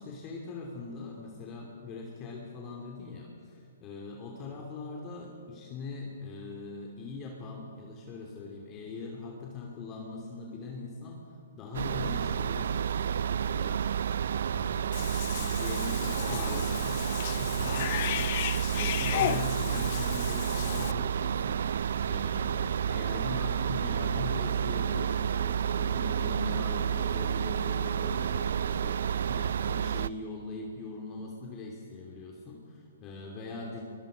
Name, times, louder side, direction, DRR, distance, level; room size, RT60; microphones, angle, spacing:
voice 1, 0.0-13.9 14.4-33.8, left 3 dB, 25° left, -1 dB, 2.8 m, -41 dB
sound 1, 11.7-30.1, right 8 dB, 65° right, 0.5 m, -30 dB
Cat / Bathtub (filling or washing), 14.9-20.9, left 13 dB, 45° left, 0.7 m, -35 dB
sound 2, 22.9-29.9, right 3 dB, 30° right, 6.2 m, -46 dB
23.5 x 21.5 x 5.3 m, 2.4 s
hypercardioid pair, 145°, 0 cm